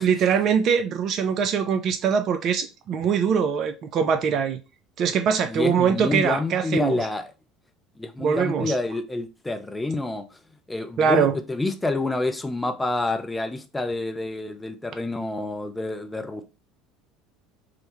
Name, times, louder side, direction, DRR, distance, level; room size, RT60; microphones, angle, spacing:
voice 1, 0.0-4.6 5.0-7.1 8.2-8.7 11.0-11.4, right 6 dB, 50° right, 0.3 m, -22 dB
voice 2, 5.5-7.2 8.0-10.2 10.7-16.4, left 2 dB, 15° left, 0.4 m, -28 dB
2.3 x 2.0 x 3.0 m
hypercardioid pair, 70°, 0 cm